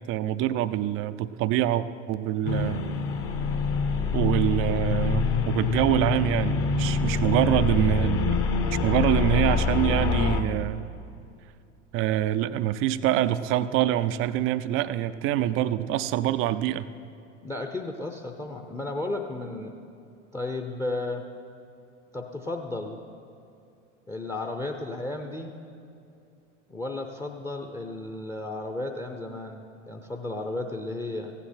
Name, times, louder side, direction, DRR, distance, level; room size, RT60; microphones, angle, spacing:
voice 1, 0.0-2.8 4.1-8.4 8.8-10.8 11.9-16.9, right 12 dB, 35° right, 13 dB, 0.5 m, -25 dB
sound 1, 2.4-10.4, left 5 dB, 35° left, 1.0 m, -25 dB
voice 2, 17.4-19.7 20.3-21.2 22.1-23.0 24.1-25.5 26.7-31.3, left 2 dB, 10° left, 4 dB, 0.7 m, -33 dB
15.5 x 9.8 x 4.4 m, 2.6 s
figure-of-eight pair, 80°, 38 cm